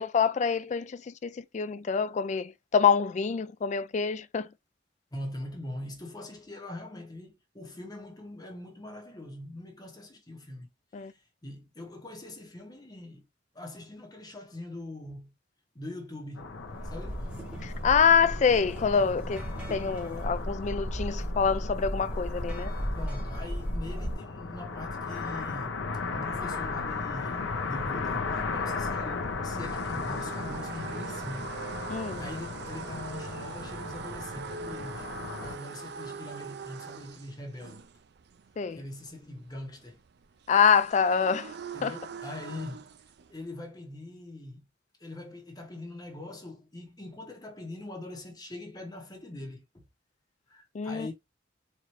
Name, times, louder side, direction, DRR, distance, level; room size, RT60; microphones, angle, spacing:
voice 1, 0.0-4.5 10.9-11.1 17.6-22.7 31.9-32.2 38.6-38.8 40.5-41.5 41.8-41.9 50.7-51.1, left 6 dB, 40° left, 0.3 m, -26 dB
voice 2, 5.1-10.7 11.0-13.2 13.5-15.3 15.7-16.5 16.8-17.3 22.9-25.8 26.1-35.1 35.4-37.9 38.7-40.0 41.7-42.9 43.3-44.6 45.0-49.8 50.5-51.1, left 1 dB, 20° left, 1.0 m, -42 dB
sound 1, 16.4-35.5, left 4 dB, 75° left, 0.8 m, -36 dB
sound 2, 16.6-24.1, equal, 5° right, 1.1 m, -35 dB
sound 3, 26.6-43.4, right 5 dB, 60° right, 0.4 m, -43 dB
4.4 x 2.6 x 3.1 m
head